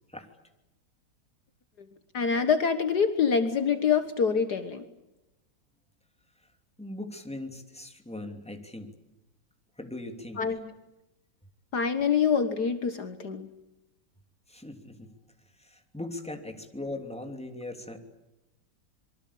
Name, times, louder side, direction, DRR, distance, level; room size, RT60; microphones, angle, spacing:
voice 1, 2.1-4.8 10.4-10.7 11.7-13.5, left 6 dB, 60° left, 9 dB, 1.8 m, -25 dB
voice 2, 6.8-8.9 9.8-10.4 14.5-15.1 15.6-18.0, left 2 dB, 5° left, 5 dB, 2.9 m, -39 dB
26.5 x 23.5 x 8.6 m, 0.96 s
omnidirectional pair, 2.1 m